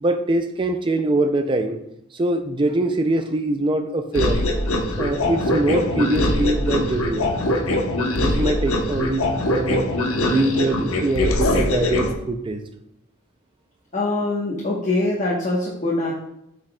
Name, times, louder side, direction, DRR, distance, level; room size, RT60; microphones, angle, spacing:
voice 1, 0.0-1.8 2.1-4.5 5.0-7.3 8.2-9.9 10.3-12.6, right 2 dB, 25° right, 7 dB, 0.3 m, -23 dB
sound 1, 4.1-12.1, left 1 dB, 85° left, 0.9 m, -22 dB
voice 2, 13.9-16.1, left 2 dB, 35° left, -4 dB, 1.1 m, -23 dB
8.1 x 6.0 x 2.2 m, 0.81 s
head